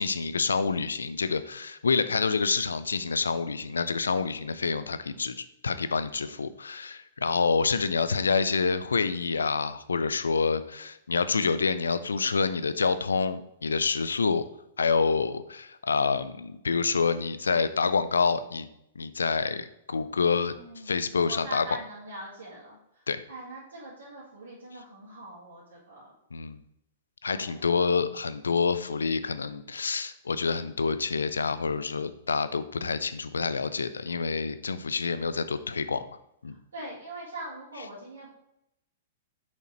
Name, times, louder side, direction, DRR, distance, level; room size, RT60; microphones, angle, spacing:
voice 1, 0.0-5.3 5.6-14.4 14.8-18.7 19.0-20.5 20.9-21.7 23.1-23.2 26.3-26.6 27.2-36.0 36.4-36.5, left 5 dB, 75° left, 13 dB, 0.4 m, -27 dB
voice 2, 20.2-26.1 27.3-27.7 36.5-38.3, right 1 dB, 75° right, -9 dB, 2.0 m, -43 dB
6.3 x 5.2 x 3.1 m, 0.81 s
figure-of-eight pair, 105°, 0 cm